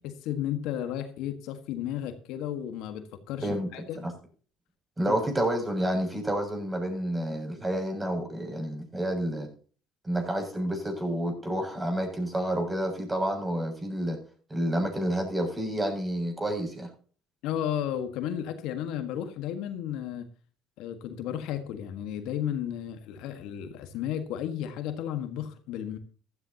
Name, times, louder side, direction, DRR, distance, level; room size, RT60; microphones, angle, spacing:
voice 1, 0.0-4.0 5.1-5.2 17.4-20.3 20.8-26.0, left 10 dB, 70° left, 1.6 m, -33 dB
voice 2, 5.0-9.5 10.0-14.2 14.5-16.9, right 1 dB, 20° right, 7.3 m, -29 dB
15.0 x 13.5 x 2.9 m
hypercardioid pair, 70°, 0 cm